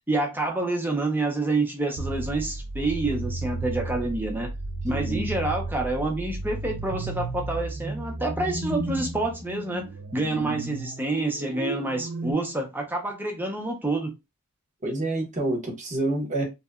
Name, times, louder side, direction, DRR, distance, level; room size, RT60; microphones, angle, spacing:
voice 1, 0.1-4.5 4.8-9.8 10.1-14.1, right 2 dB, 10° right, 0.5 m, -28 dB
sound 1, 2.0-12.3, right 2 dB, 75° right, 0.5 m, -33 dB
voice 2, 4.9-5.3 14.8-16.4, right 2 dB, 35° right, 0.9 m, -28 dB
2.7 x 2.2 x 2.3 m
head